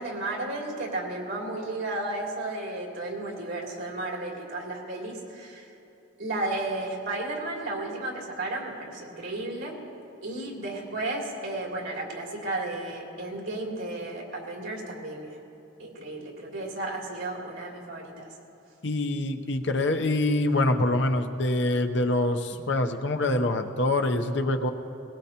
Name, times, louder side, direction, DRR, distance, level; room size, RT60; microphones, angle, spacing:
voice 1, 0.0-5.7 6.2-9.8 10.2-15.4 15.8-18.3, right 2 dB, 80° right, -3 dB, 3.0 m, -33 dB
voice 2, 18.8-24.7, left 2 dB, 60° left, 6 dB, 0.8 m, -25 dB
21.0 x 19.5 x 2.9 m, 2.8 s
head